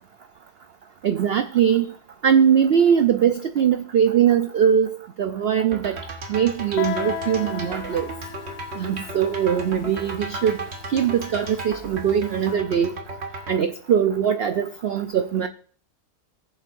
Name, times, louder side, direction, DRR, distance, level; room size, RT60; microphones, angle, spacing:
voice 1, 1.0-1.9 2.2-4.9 5.2-6.0 6.3-8.1 8.8-10.6 10.9-12.9 13.5-15.5, right 8 dB, 75° right, 0.5 m, -21 dB
sound 1, 5.7-13.6, right 2 dB, 45° right, 1.6 m, -35 dB
Guitar, 6.8-12.2, left 8 dB, 65° left, 1.1 m, -36 dB
19.0 x 7.5 x 2.6 m
omnidirectional pair, 1.7 m